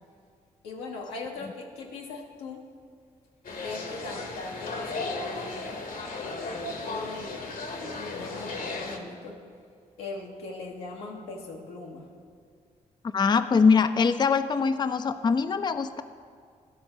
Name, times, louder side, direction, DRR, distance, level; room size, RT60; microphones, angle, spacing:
voice 1, 0.6-2.6 3.6-5.8 6.2-7.4 7.8-9.4 10.0-12.1, left 2 dB, 90° left, 0 dB, 1.0 m, -40 dB
sound 1, 3.4-9.0, left 3 dB, 60° left, 1.0 m, -35 dB
voice 2, 13.1-16.0, left 5 dB, 25° left, 11 dB, 0.4 m, -23 dB
11.5 x 4.2 x 5.9 m, 2.1 s
hypercardioid pair, 40°, 16 cm